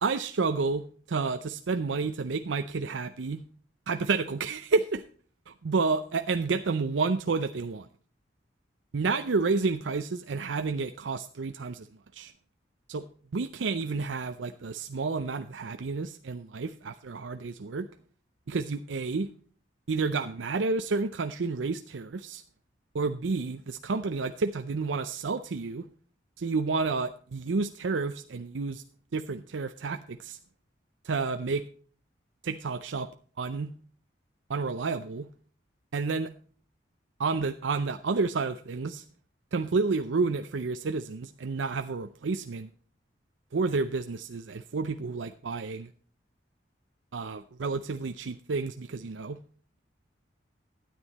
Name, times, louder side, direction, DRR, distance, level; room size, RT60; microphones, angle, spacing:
voice 1, 0.0-3.4 3.9-5.0 5.7-7.9 8.9-11.9 12.1-12.3 12.9-13.1 13.3-17.9 18.5-19.3 19.9-22.4 22.9-25.9 26.4-28.8 29.1-30.4 31.0-31.6 32.4-33.1 33.4-33.7 34.5-35.3 35.9-36.3 37.2-39.0 39.5-42.7 43.5-45.9 47.1-49.4, right 4 dB, 85° right, 8 dB, 0.5 m, -30 dB
12.5 x 9.3 x 4.1 m, 0.44 s
head